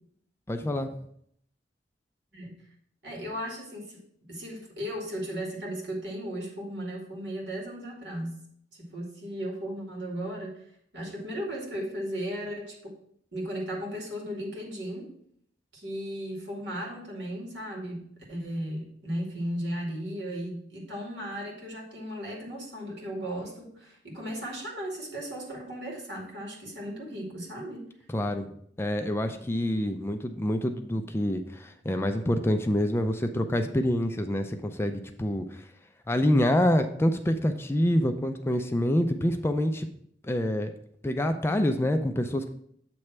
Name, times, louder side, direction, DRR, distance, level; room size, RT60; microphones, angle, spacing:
voice 1, 0.5-0.9 28.1-28.5 28.8-35.6 36.1-39.9 40.2-40.7 41.0-42.5, left 1 dB, 15° left, 6 dB, 0.4 m, -26 dB
voice 2, 3.0-8.4 8.7-10.6 10.9-12.9 13.3-15.1 15.7-18.0 18.3-27.9, equal, 75° right, -2 dB, 2.2 m, -36 dB
7.7 x 3.2 x 5.9 m, 0.68 s
head